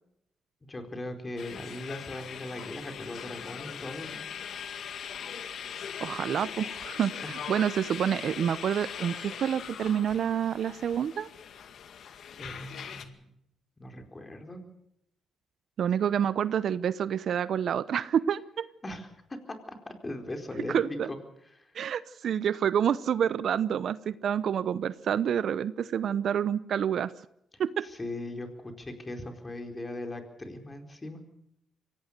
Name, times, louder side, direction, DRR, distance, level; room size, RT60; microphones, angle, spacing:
voice 1, 0.7-4.2 7.2-7.3 12.4-13.3 13.8-14.6 18.8-19.1 19.5-21.2 21.5-21.8 27.5-31.2, left 1 dB, 20° left, 5 dB, 4.5 m, -39 dB
sound 1, 1.4-13.1, left 8 dB, 65° left, 2.1 m, -40 dB
voice 2, 6.0-11.3 15.8-18.7 20.7-21.1 21.7-27.1 27.6-27.9, right 8 dB, 60° right, 17 dB, 0.8 m, -28 dB
24.0 x 17.5 x 6.7 m, 0.78 s
cardioid pair, 90°, 0 cm